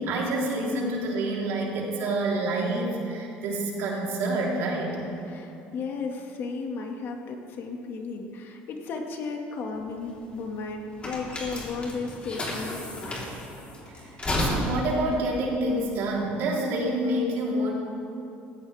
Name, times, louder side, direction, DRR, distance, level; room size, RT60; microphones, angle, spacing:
voice 1, 0.0-5.1 13.9-14.0 14.4-17.7, right 1 dB, 70° right, -3 dB, 3.9 m, -27 dB
voice 2, 5.2-13.5, left 4 dB, 55° left, 2 dB, 2.0 m, -35 dB
sound 1, 9.7-16.5, left 1 dB, 25° left, 4.0 m, -32 dB
18.5 x 15.0 x 3.6 m, 2.7 s
supercardioid pair, 95°, 4 cm